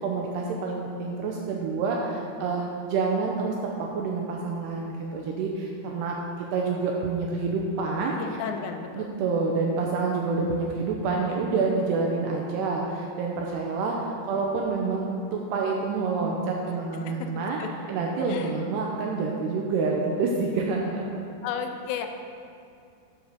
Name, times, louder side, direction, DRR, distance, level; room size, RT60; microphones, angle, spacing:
voice 1, 0.0-6.2 6.5-8.2 8.9-17.6 17.9-21.1, right 4 dB, 80° right, -1 dB, 2.5 m, -28 dB
voice 2, 8.1-9.2 17.1-17.7 18.3-18.5 21.4-22.1, left 7 dB, 80° left, 6 dB, 2.6 m, -34 dB
9.8 x 5.9 x 6.4 m, 2.4 s
omnidirectional pair, 5.4 m